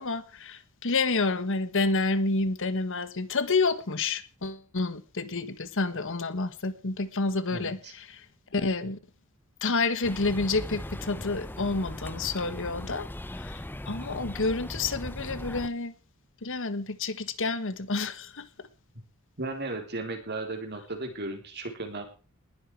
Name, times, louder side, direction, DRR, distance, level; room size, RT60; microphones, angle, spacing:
voice 1, 0.0-8.2 8.5-9.0 9.6-13.1 13.3-15.9 16.4-18.5, left 3 dB, 65° left, 1.4 m, -29 dB
voice 2, 7.5-7.9 19.4-22.1, right 2 dB, 50° right, 3.8 m, -35 dB
sound 1, 10.0-15.7, left 1 dB, 10° left, 0.6 m, -39 dB
20.0 x 11.5 x 4.7 m
head